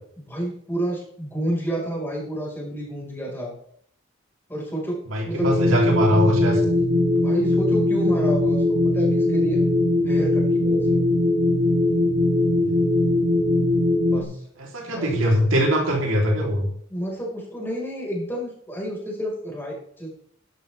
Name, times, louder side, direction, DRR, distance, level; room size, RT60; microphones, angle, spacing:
voice 1, 0.2-3.6 4.5-5.5 7.2-9.6 10.0-11.0 14.0-14.4 14.9-15.2 16.9-20.1, right 1 dB, 10° left, -3 dB, 4.8 m, -30 dB
voice 2, 5.1-6.6 12.6-12.8 14.6-16.7, equal, 90° right, 0 dB, 3.3 m, -22 dB
sound 1, 5.4-14.2, left 2 dB, 45° right, 3.2 m, -20 dB
12.0 x 12.0 x 3.4 m, 0.65 s
head